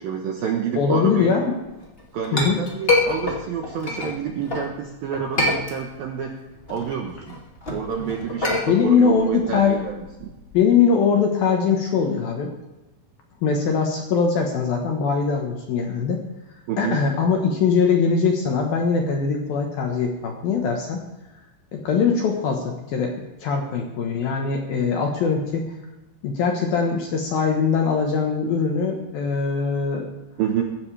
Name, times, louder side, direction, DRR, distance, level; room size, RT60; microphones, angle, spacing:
voice 1, 0.0-1.4 2.1-6.3 6.7-7.4 7.7-10.3 16.7-17.0 30.4-30.6, right 8 dB, 75° right, 2 dB, 2.2 m, -28 dB
voice 2, 0.7-1.5 2.3-2.6 8.7-9.9 10.5-12.5 13.4-16.2 16.8-21.0 21.7-23.1 23.4-25.7 26.2-30.1, left 5 dB, 65° left, 2 dB, 2.4 m, -21 dB
Chink clink, 1.8-4.7 5.1-6.2 6.5-10.6, left 2 dB, 50° left, 0.6 m, -26 dB
23.0 x 12.5 x 3.4 m, 1.0 s
omnidirectional pair, 5.7 m